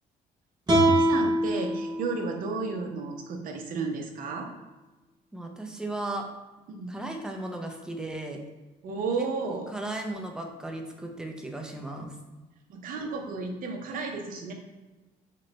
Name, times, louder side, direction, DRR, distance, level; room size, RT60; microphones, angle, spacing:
sound 1, 0.7-3.8, right 1 dB, 25° right, 0.9 m, -26 dB
voice 1, 0.9-4.5 6.7-6.9 8.8-9.8 12.7-14.5, right 4 dB, 55° right, 2 dB, 0.6 m, -33 dB
voice 2, 5.3-6.3 6.9-8.4 9.4-12.2, right 2 dB, 5° right, 2 dB, 0.4 m, -36 dB
3.0 x 2.2 x 3.9 m, 1.2 s
cardioid pair, 110°, 17 cm